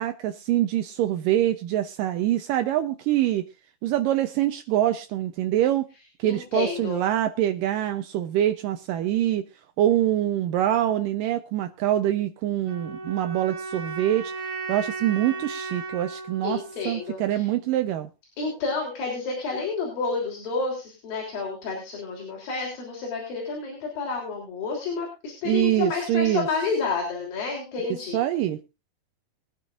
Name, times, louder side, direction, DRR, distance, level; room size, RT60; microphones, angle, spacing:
voice 1, 0.0-3.4 3.8-5.9 6.2-9.4 9.8-14.3 14.7-18.1 25.4-26.5 28.1-28.6, right 12 dB, 85° right, 8 dB, 1.9 m, -24 dB
voice 2, 6.2-7.0 16.4-17.5 18.4-28.2, left 4 dB, 60° left, -1 dB, 5.0 m, -30 dB
sound 1, 12.6-17.7, right 3 dB, 25° right, 2.6 m, -36 dB
22.0 x 9.8 x 2.5 m, 0.29 s
omnidirectional pair, 4.8 m